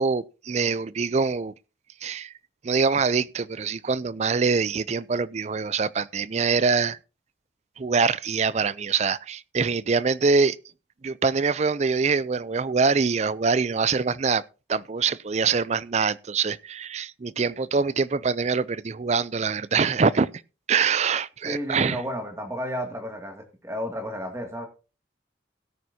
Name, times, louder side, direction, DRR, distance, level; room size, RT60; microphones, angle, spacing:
voice 1, 0.0-1.5 2.0-2.3 2.6-7.0 7.8-10.6 11.0-14.4 14.7-20.3 20.7-22.0, right 5 dB, 40° right, 0.4 m, -24 dB
voice 2, 21.4-24.7, equal, 15° right, 2.3 m, -32 dB
17.0 x 9.3 x 2.8 m
head